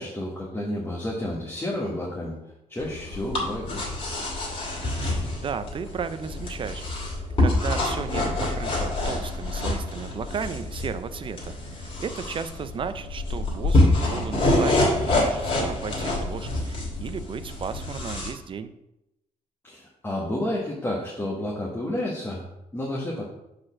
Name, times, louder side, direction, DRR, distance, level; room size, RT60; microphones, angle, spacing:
voice 1, 0.0-2.4 2.7-3.9 19.6-23.3, left 1 dB, 15° left, -4 dB, 1.2 m, -31 dB
sound 1, 2.8-18.3, left 2 dB, 45° left, 2.3 m, -26 dB
voice 2, 5.4-18.7, right 6 dB, 40° right, 12 dB, 0.4 m, -35 dB
5.1 x 4.2 x 6.0 m, 0.88 s
cardioid pair, 130°, 13 cm